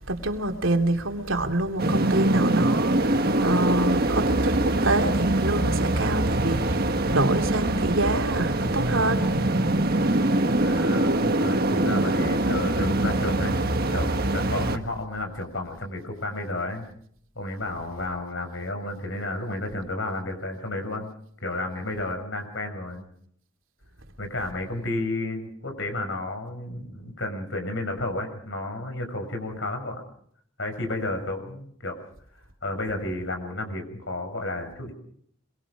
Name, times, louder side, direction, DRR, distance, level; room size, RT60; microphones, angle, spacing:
voice 1, 0.1-9.2, right 2 dB, 85° right, 3.0 m, -26 dB
sound 1, 1.8-14.8, right 1 dB, 50° right, 1.6 m, -23 dB
voice 2, 10.5-13.6 13.9-16.8 17.3-21.1 21.4-23.0 24.2-30.0 30.6-32.0 32.6-34.9, left 2 dB, 70° left, 6.6 m, -32 dB
26.0 x 23.5 x 5.1 m
head